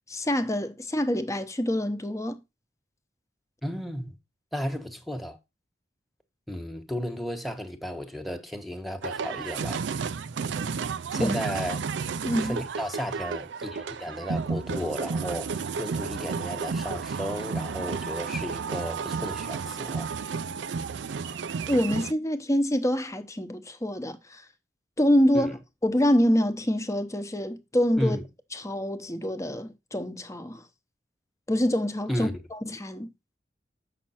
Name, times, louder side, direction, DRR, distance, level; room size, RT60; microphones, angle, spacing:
voice 1, 0.0-2.4 11.2-11.4 12.2-12.6 21.7-24.4 25.0-25.6 25.8-28.2 28.5-30.6 31.5-33.1, equal, 20° left, 0.9 m, -26 dB
voice 2, 3.6-4.2 4.5-5.4 6.5-9.8 11.1-11.8 12.4-20.1 25.3-25.5 28.0-28.2 32.1-32.3, equal, ahead, 1.2 m, -33 dB
sound 1, 9.0-22.1, right 5 dB, 85° right, 0.4 m, -32 dB
7.4 x 5.9 x 4.3 m
head